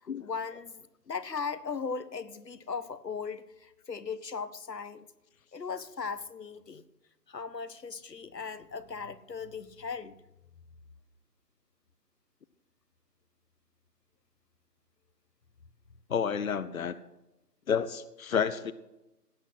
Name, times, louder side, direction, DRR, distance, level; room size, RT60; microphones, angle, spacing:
voice 1, 0.0-5.1 5.5-6.8 7.3-10.2, left 5 dB, 90° left, 14 dB, 1.3 m, -38 dB
voice 2, 16.1-16.9 17.7-18.7, left 7 dB, 60° left, 15 dB, 0.9 m, -30 dB
17.5 x 8.3 x 5.9 m, 0.95 s
figure-of-eight pair, 160°, 48 cm